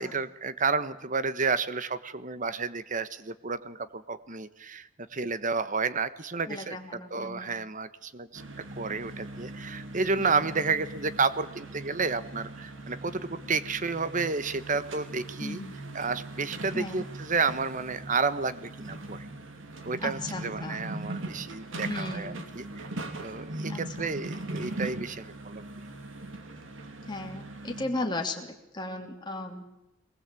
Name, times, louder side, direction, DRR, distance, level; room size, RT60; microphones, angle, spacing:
voice 1, 0.0-8.4 8.8-15.6 15.9-19.2 19.8-22.9 23.2-25.6, right 4 dB, 40° right, 14 dB, 1.2 m, -31 dB
voice 2, 6.5-7.6 10.2-10.4 15.4-15.7 16.7-17.0 20.0-20.8 21.8-22.4 23.7-24.1 27.1-29.6, left 2 dB, 20° left, 2 dB, 3.0 m, -36 dB
sound 1, 8.3-27.8, right 2 dB, 75° right, 2.9 m, -40 dB
22.5 x 20.0 x 8.4 m, 0.87 s
head